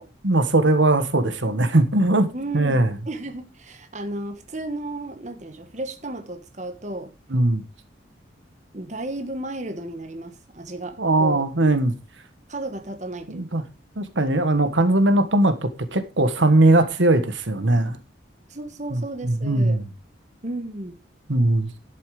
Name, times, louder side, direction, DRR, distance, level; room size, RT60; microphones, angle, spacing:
voice 1, 0.2-2.3 2.5-2.9 7.3-7.6 11.0-11.9 13.3-13.6 14.0-18.0 18.9-19.8 21.3-21.7, right 2 dB, 75° right, 1.5 m, -20 dB
voice 2, 2.3-7.1 8.7-11.5 12.5-13.7 18.5-19.8 20.4-21.0, right 2 dB, 40° right, 1.4 m, -34 dB
11.5 x 8.4 x 4.9 m
head